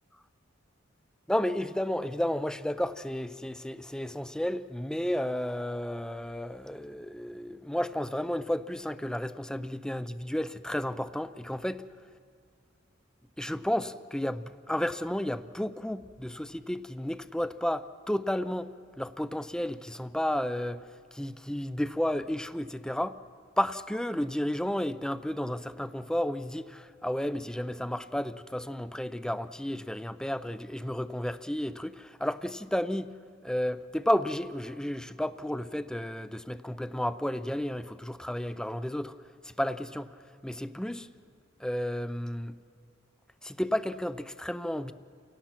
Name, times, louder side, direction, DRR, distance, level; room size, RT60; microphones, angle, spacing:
voice 1, 1.3-11.8 13.4-18.7 19.0-23.2 23.6-33.1 33.4-39.1 39.4-40.1 40.4-41.1 41.6-42.5 43.4-44.9, left 1 dB, 5° left, 13 dB, 0.5 m, -32 dB
29.5 x 17.5 x 5.9 m, 2.3 s
head